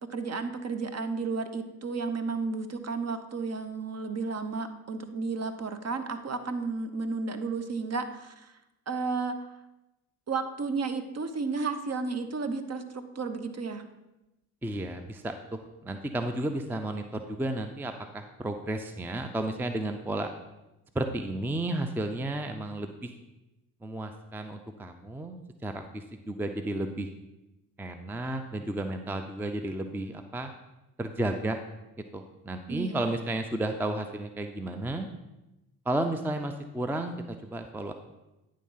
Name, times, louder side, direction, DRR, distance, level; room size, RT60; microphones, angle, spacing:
voice 1, 0.0-8.5 8.9-9.4 10.3-13.8 32.7-33.1, right 4 dB, 35° right, 9 dB, 0.9 m, -32 dB
voice 2, 14.6-20.3 20.9-23.1 23.8-27.1 27.8-30.5 31.0-31.6 32.1-35.1 35.9-37.9, right 1 dB, 5° right, 7 dB, 0.5 m, -33 dB
9.9 x 3.8 x 5.6 m, 0.98 s
hypercardioid pair, 55°, 44 cm